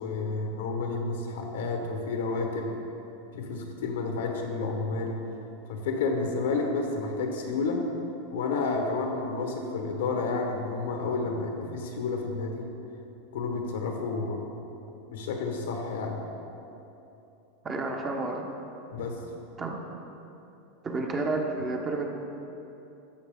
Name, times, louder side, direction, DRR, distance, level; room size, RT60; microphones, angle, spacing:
voice 1, 0.0-2.7 3.3-5.2 5.7-7.8 8.3-12.6 13.3-14.4 15.1-16.2 18.9-19.2, left 3 dB, 85° left, 2 dB, 1.3 m, -30 dB
voice 2, 17.6-18.5 19.6-19.8 20.8-22.1, right 3 dB, 25° right, 1 dB, 1.1 m, -30 dB
12.0 x 6.5 x 3.8 m, 2.9 s
supercardioid pair, 130°, 0 cm